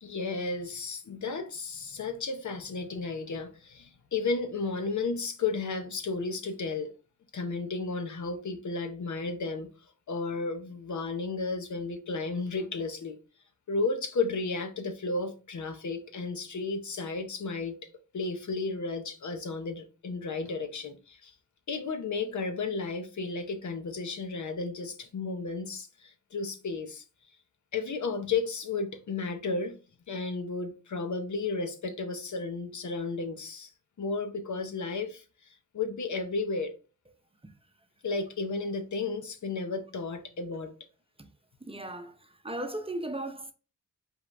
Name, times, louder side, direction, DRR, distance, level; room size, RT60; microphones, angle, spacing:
voice 1, 0.0-6.9 7.3-9.7 10.1-13.2 13.7-17.8 18.1-21.3 21.7-27.0 27.7-29.8 30.1-33.7 34.0-35.2 35.7-36.7 38.0-40.7, left 4 dB, 65° left, 0.9 m, -33 dB
voice 2, 41.6-43.5, right 1 dB, 15° right, 0.7 m, -37 dB
5.0 x 3.8 x 2.6 m
cardioid pair, 60°, 32 cm